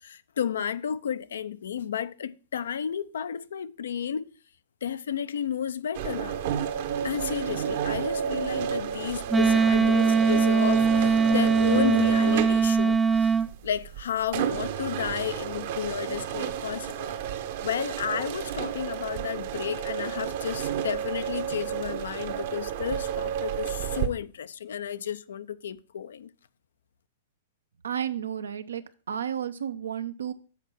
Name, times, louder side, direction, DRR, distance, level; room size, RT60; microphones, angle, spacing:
voice 1, 0.0-4.3 4.8-6.4 7.0-13.3 13.6-17.1 17.6-26.3, left 9 dB, 80° left, 0.5 m, -32 dB
sound 1, 5.9-24.1, right 8 dB, 60° right, 1.0 m, -31 dB
Wind instrument woodwind instrument, 9.3-13.5, right 5 dB, 10° right, 0.3 m, -21 dB
voice 2, 27.8-30.3, right 9 dB, 85° right, 0.7 m, -32 dB
7.2 x 4.4 x 6.1 m
hypercardioid pair, 120°, 0 cm